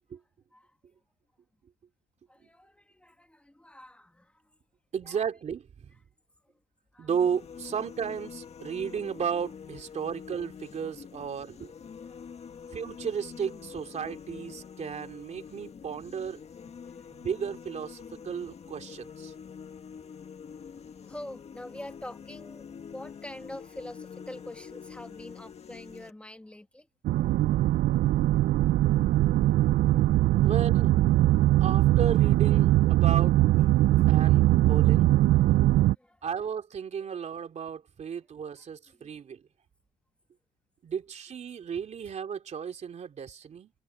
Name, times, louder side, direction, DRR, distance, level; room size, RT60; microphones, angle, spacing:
voice 1, 2.3-4.6 5.0-5.2 6.4-6.5 6.9-7.1 12.0-12.3 12.7-12.8 16.8-17.3 21.0-26.9 34.0-34.1 35.2-36.3 37.0-37.1 39.0-39.1, left 1 dB, 5° left, 2.1 m, -46 dB
voice 2, 4.9-5.9 7.0-11.7 12.7-16.7 17.1-19.3 30.4-30.9 31.6-33.4 34.1-35.1 36.2-39.4 40.8-43.7, right 7 dB, 40° right, 2.9 m, -34 dB
sound 1, 7.1-26.1, left 7 dB, 40° left, 1.6 m, -45 dB
sound 2, 27.0-35.9, right 15 dB, 65° right, 0.5 m, -21 dB
cardioid pair, 110°, 17 cm